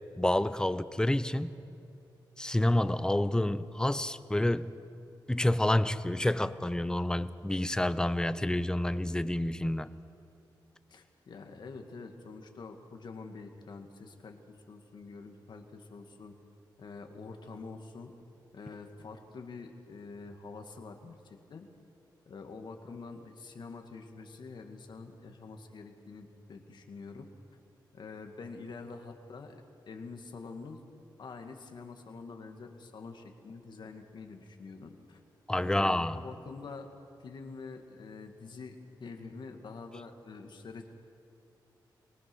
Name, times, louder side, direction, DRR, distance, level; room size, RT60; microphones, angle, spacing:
voice 1, 0.2-1.6 2.4-4.7 5.3-10.0 35.5-36.3, left 1 dB, 10° left, 14 dB, 0.7 m, -28 dB
voice 2, 10.9-16.4 16.8-18.1 18.5-21.7 22.3-27.3 27.9-30.8 31.2-35.2 35.6-36.9 37.2-40.9, left 4 dB, 65° left, 5 dB, 2.1 m, -46 dB
24.0 x 19.5 x 6.3 m, 2.7 s
cardioid pair, 85°, 8 cm